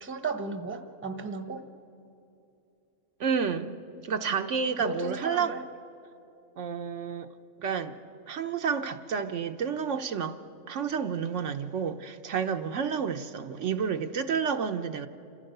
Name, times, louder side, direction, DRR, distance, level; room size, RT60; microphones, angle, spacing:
voice 1, 0.0-1.6 4.8-5.6, right 4 dB, 10° right, 8 dB, 0.8 m, -35 dB
voice 2, 3.2-3.7 4.0-5.6 6.6-7.3 7.6-8.0 8.3-10.4 10.7-15.1, right 6 dB, 70° right, 7 dB, 1.0 m, -30 dB
28.0 x 15.0 x 6.6 m, 2.8 s
omnidirectional pair, 1.4 m